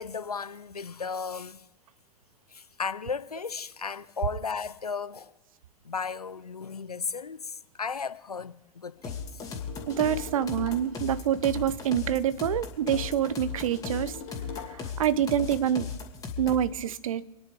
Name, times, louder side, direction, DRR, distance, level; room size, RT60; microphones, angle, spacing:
voice 1, 0.0-1.7 2.5-5.3 5.8-9.4, left 5 dB, 85° left, 0.6 m, -35 dB
sound 1, 9.0-11.0 12.9-15.0, left 6 dB, 50° left, 2.9 m, -43 dB
sound 2, 9.0-16.7, left 6 dB, 20° left, 2.7 m, -37 dB
voice 2, 9.9-14.1 15.0-15.9 16.4-17.2, right 10 dB, 65° right, 0.7 m, -26 dB
28.5 x 10.5 x 3.6 m
figure-of-eight pair, 90°, 19 cm